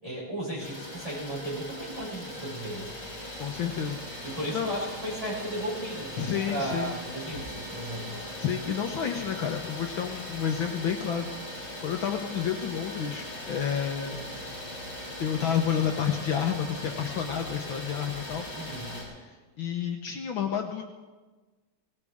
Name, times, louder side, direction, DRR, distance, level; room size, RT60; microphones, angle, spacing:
voice 1, 0.0-2.9 4.2-8.2 18.5-19.0, right 1 dB, 15° right, -8 dB, 7.0 m, -35 dB
Idling, 0.6-19.0, left 1 dB, 50° left, 6.8 m, -39 dB
voice 2, 3.4-4.7 6.2-6.9 8.4-11.3 11.8-14.2 15.2-18.5 19.2-20.8, left 8 dB, 70° left, 3 dB, 1.7 m, -30 dB
21.0 x 18.5 x 3.6 m, 1.3 s
omnidirectional pair, 2.4 m